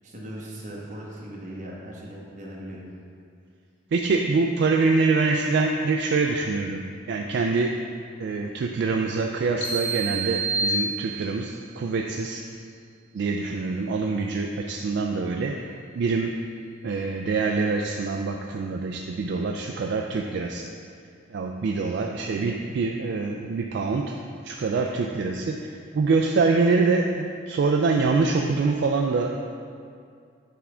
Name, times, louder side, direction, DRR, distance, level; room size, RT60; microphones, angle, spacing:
voice 1, 0.0-2.8 21.8-22.1, right 1 dB, 40° right, -4 dB, 1.1 m, -39 dB
voice 2, 3.9-7.8 8.2-12.4 13.1-15.6 15.9-16.5 16.8-20.7 21.3-24.2 24.4-29.3, right 4 dB, 60° right, 2 dB, 0.3 m, -25 dB
sound 1, 9.6-11.5, right 3 dB, 85° left, 1.0 m, -28 dB
7.2 x 3.5 x 4.9 m, 2.3 s
head